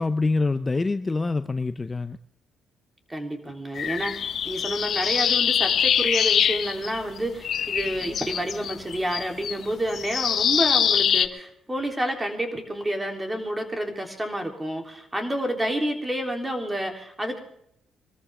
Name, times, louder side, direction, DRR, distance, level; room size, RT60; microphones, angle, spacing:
voice 1, 0.0-2.2, left 3 dB, 25° left, 11 dB, 0.6 m, -25 dB
voice 2, 3.1-17.4, right 1 dB, 15° right, 3 dB, 3.6 m, -29 dB
sound 1, 3.8-7.2 7.4-11.3, left 8 dB, 60° left, 0.9 m, -24 dB
23.5 x 14.0 x 3.7 m, 0.73 s
cardioid pair, 90°, 0 cm